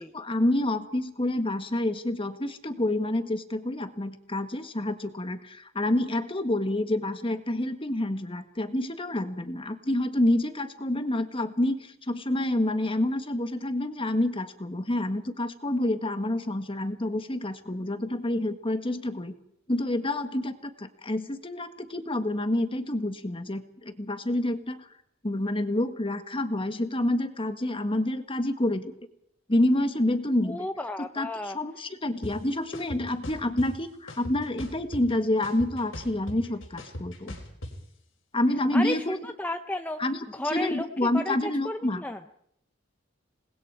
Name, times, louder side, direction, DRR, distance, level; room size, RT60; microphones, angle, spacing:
voice 1, 0.0-19.3 19.7-24.8 25.2-28.9 29.5-30.7 31.0-37.4 38.3-39.2 40.0-40.2 40.5-42.0, left 1 dB, 25° left, 8 dB, 1.6 m, -28 dB
voice 2, 30.5-31.6 38.7-40.0 40.3-40.9 41.1-42.2, left 1 dB, 10° left, 6 dB, 0.8 m, -33 dB
sound 1, 32.2-32.3 32.7-33.7 34.1-35.1 35.4-37.7, left 1 dB, 85° left, 4.6 m, -38 dB
27.5 x 20.0 x 4.8 m, 0.71 s
head